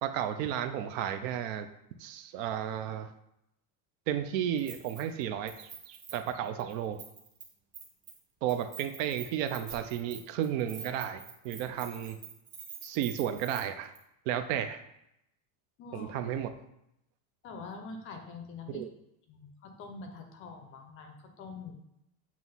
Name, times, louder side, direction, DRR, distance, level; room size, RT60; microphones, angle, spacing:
voice 1, 0.0-1.7 2.0-3.1 4.1-7.0 8.4-12.2 12.8-13.9 14.3-14.8 15.9-16.5 18.7-18.9, right 10 dB, 55° right, 9 dB, 0.6 m, -33 dB
Keys jangling, 4.6-5.2 5.5-7.4 7.7-8.2 8.5-13.6 14.0-14.1, right 7 dB, 20° right, 1.0 m, -46 dB
voice 2, 15.8-16.2 17.4-18.8 19.3-21.8, left 4 dB, 30° left, 5 dB, 0.6 m, -45 dB
7.7 x 3.0 x 5.5 m, 0.82 s
cardioid pair, 180°, 45 cm